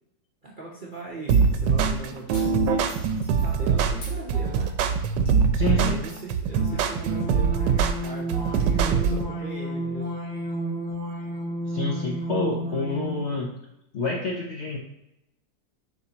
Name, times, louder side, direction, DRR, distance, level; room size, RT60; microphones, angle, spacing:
voice 1, 0.4-4.8 5.6-10.2, right 3 dB, 45° right, -4 dB, 0.6 m, -40 dB
sound 1, 0.9-1.6 2.3-3.6 4.0-4.2 4.7-4.8 5.3-5.6 6.1-6.2, left 1 dB, 80° left, 2.8 m, -46 dB
sound 2, 1.3-9.3, right 6 dB, 75° right, 1.2 m, -23 dB
voice 2, 5.5-6.0 11.7-13.5 13.9-14.8, left 3 dB, 60° left, -1 dB, 0.7 m, -28 dB
sound 3, 6.5-13.3, right 1 dB, 5° left, 1.8 m, -32 dB
7.0 x 4.6 x 2.9 m, 0.87 s
omnidirectional pair, 2.0 m